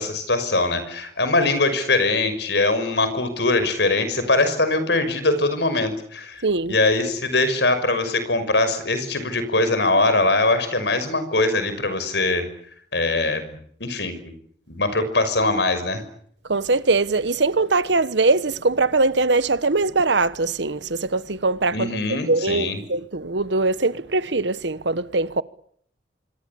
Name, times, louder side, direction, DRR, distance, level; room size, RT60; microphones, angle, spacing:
voice 1, 0.0-6.4 6.7-12.5 12.9-14.3 14.7-16.0 21.7-22.8, left 2 dB, 65° left, 6.0 m, -22 dB
voice 2, 6.4-6.7 16.5-21.9 22.3-25.4, right 3 dB, 75° right, 1.2 m, -21 dB
26.5 x 23.5 x 8.6 m
head